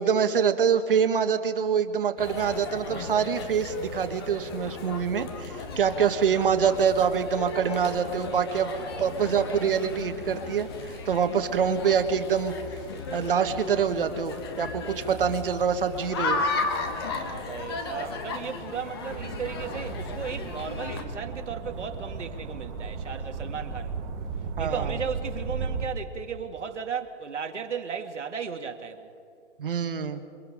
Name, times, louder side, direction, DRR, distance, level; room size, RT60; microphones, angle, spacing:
voice 1, 0.0-12.5 13.1-16.4 24.6-24.9 29.6-30.2, right 7 dB, 50° right, 1.6 m, -25 dB
sound 1, 2.2-21.0, left 3 dB, 20° left, 1.2 m, -35 dB
voice 2, 8.8-9.4 15.0-15.6 17.1-24.1 24.6-29.1, right 6 dB, 85° right, 2.3 m, -36 dB
sound 2, 19.1-25.9, right 4 dB, 10° right, 0.9 m, -35 dB
28.0 x 23.5 x 5.0 m
hypercardioid pair, 170°, 35 cm